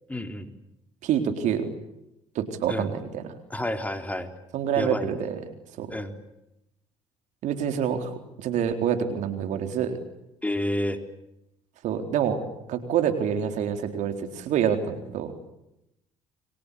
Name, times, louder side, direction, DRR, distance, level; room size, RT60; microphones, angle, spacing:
voice 1, 0.1-0.5 2.7-2.9 3.5-4.3 4.8-5.2 5.9-6.2 10.4-11.0, left 1 dB, 10° left, 7 dB, 4.0 m, -29 dB
voice 2, 1.0-1.7 2.3-3.3 4.5-5.4 5.8-5.9 7.4-10.0 11.8-12.4 12.7-15.3, right 8 dB, 70° right, 6 dB, 4.0 m, -27 dB
29.5 x 23.5 x 8.5 m, 0.86 s
hypercardioid pair, 60°, 13 cm